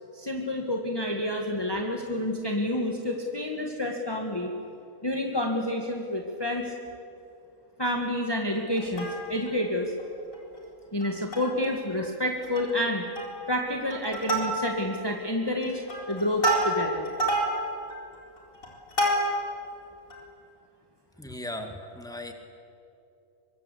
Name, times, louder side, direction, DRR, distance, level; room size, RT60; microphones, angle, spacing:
voice 1, 0.1-4.5 5.0-6.7 7.8-9.9 10.9-13.1 13.5-15.8 16.1-17.1, left 1 dB, 20° left, 1 dB, 1.7 m, -29 dB
Plucked string instrument, 8.8-9.6 10.0-10.1 10.3-10.6 11.0-11.7 12.0-12.1 12.4-12.8 13.2-13.5 13.9-15.0 15.5-19.6 20.1-20.2, right 1 dB, 90° left, 4.9 m, -29 dB
voice 2, 21.2-22.3, left 1 dB, 5° left, 4 dB, 2.2 m, -37 dB
24.0 x 23.5 x 8.3 m, 2.7 s
omnidirectional pair, 1.4 m